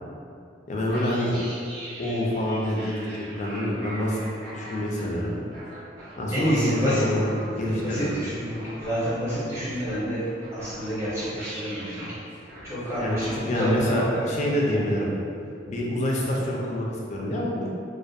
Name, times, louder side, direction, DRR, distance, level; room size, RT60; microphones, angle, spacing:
voice 1, 0.7-1.3 2.0-3.1 3.4-4.2 4.5-5.3 6.2-7.3 7.5-8.1 13.0-13.2 13.5-15.1 15.7-17.7, left 1 dB, 40° left, -3 dB, 0.3 m, -26 dB
sound 1, 0.9-13.4, right 1 dB, 60° right, 0.7 m, -42 dB
voice 2, 6.3-7.1 7.5-12.2 12.6-14.3 14.7-15.0, equal, 15° right, -11 dB, 0.7 m, -29 dB
2.6 x 2.1 x 2.3 m, 2.5 s
head